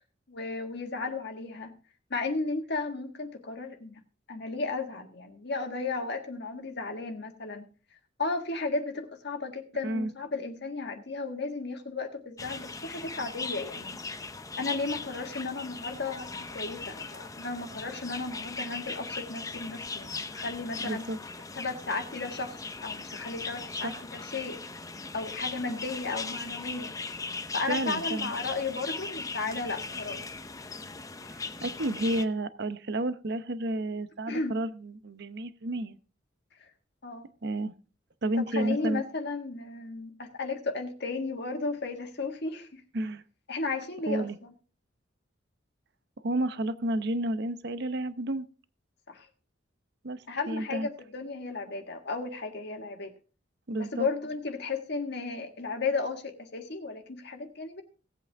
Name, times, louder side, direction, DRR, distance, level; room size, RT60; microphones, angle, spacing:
voice 1, 0.3-1.7 2.1-4.0 4.3-7.6 8.2-14.0 14.6-21.1 21.5-24.6 25.1-26.9 27.5-30.2 34.3-34.6 37.0-37.3 38.3-42.8 43.5-44.5 49.1-49.3 50.3-53.1 53.8-57.8, left 3 dB, 60° left, 4 dB, 1.6 m, -34 dB
sound 1, 12.4-32.3, left 4 dB, 20° left, 0.6 m, -39 dB
voice 2, 20.8-21.2 23.8-24.0 27.7-28.3 31.6-36.0 37.4-37.7 38.2-39.0 42.9-43.2 44.1-44.4 46.2-48.5 50.0-50.9 53.7-54.1, right 1 dB, 60° right, 13 dB, 0.8 m, -31 dB
17.5 x 8.3 x 3.5 m, 0.35 s
head